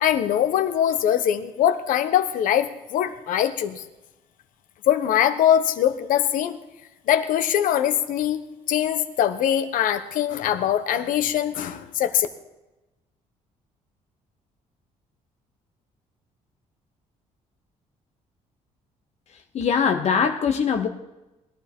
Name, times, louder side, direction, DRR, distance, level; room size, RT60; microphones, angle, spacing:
voice 1, 0.0-3.8 4.9-6.6 7.1-8.4 8.7-12.3, left 10 dB, 80° left, 10 dB, 1.1 m, -22 dB
voice 2, 19.5-20.9, left 6 dB, 55° left, 5 dB, 0.9 m, -22 dB
20.0 x 12.0 x 3.7 m, 1.0 s
cardioid pair, 105°, 14 cm